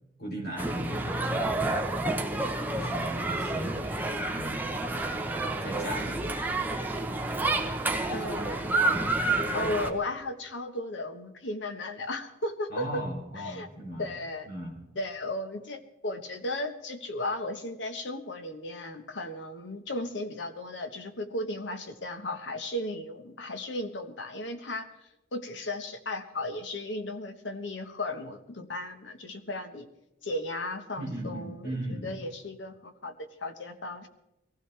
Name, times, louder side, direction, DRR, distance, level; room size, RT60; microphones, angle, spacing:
voice 1, 0.2-1.6 2.7-3.9 4.3-4.7 5.6-6.3 8.1-9.2 12.7-14.1 14.5-14.8 31.0-32.2, equal, 60° left, 0 dB, 3.7 m, -38 dB
sound 1, 0.6-9.9, right 2 dB, 10° right, 1.0 m, -29 dB
voice 2, 8.1-9.1 9.5-13.0 13.3-13.7 14.0-14.5 14.9-29.9 30.2-34.1, left 1 dB, 75° left, 7 dB, 1.3 m, -35 dB
22.5 x 15.5 x 3.4 m, 0.93 s
head